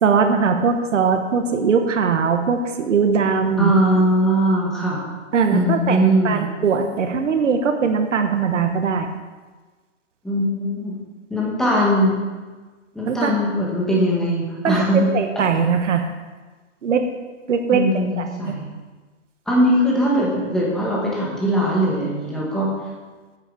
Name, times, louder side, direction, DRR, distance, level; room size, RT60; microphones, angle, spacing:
voice 1, 0.0-3.7 5.3-9.1 13.1-13.3 14.6-16.0 16.8-17.0 17.5-18.6, right 5 dB, 70° right, 6 dB, 1.3 m, -20 dB
voice 2, 3.6-5.0 5.5-6.5 10.2-10.9 11.3-12.2 12.9-15.4 17.7-18.7 19.5-22.7, equal, ahead, -5 dB, 1.6 m, -20 dB
9.8 x 9.0 x 4.9 m, 1.3 s
hypercardioid pair, 165°, 38 cm